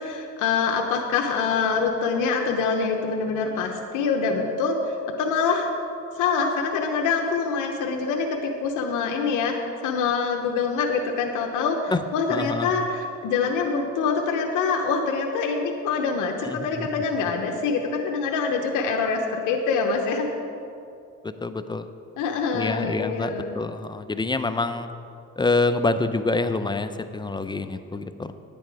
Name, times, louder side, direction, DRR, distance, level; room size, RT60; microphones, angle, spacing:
voice 1, 0.0-5.7 6.1-9.5 9.8-20.3 22.2-23.6, left 5 dB, 90° left, 2 dB, 0.8 m, -25 dB
voice 2, 12.3-12.7 16.5-16.9 21.4-21.9 22.5-24.9 25.4-28.3, left 3 dB, 15° left, 10 dB, 0.5 m, -26 dB
10.0 x 8.7 x 4.7 m, 2.6 s
cardioid pair, 90°, 30 cm